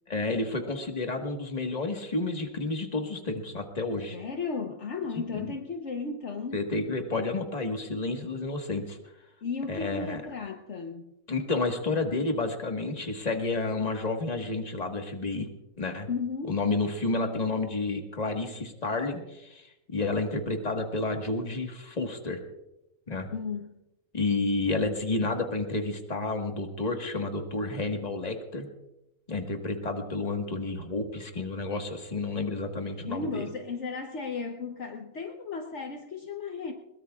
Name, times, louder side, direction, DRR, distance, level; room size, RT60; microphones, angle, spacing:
voice 1, 0.1-4.2 5.1-5.5 6.5-9.0 9.7-10.2 11.3-15.5 15.8-16.1 16.4-22.4 23.1-23.3 24.1-28.7 29.3-33.5, left 3 dB, 30° left, 3 dB, 1.7 m, -30 dB
voice 2, 4.1-6.6 9.4-11.0 16.1-16.5 23.3-23.7 32.9-36.7, left 5 dB, 60° left, 4 dB, 1.2 m, -34 dB
21.5 x 21.0 x 2.4 m, 0.92 s
omnidirectional pair, 1.5 m